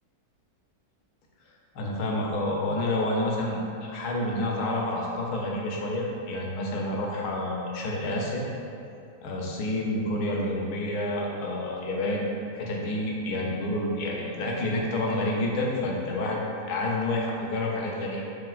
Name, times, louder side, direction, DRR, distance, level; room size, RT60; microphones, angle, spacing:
voice 1, 1.7-8.5 9.2-12.3 12.5-16.4 16.7-18.3, left 1 dB, 85° left, -2 dB, 1.2 m, -29 dB
4.8 x 3.1 x 2.4 m, 2.5 s
omnidirectional pair, 1.6 m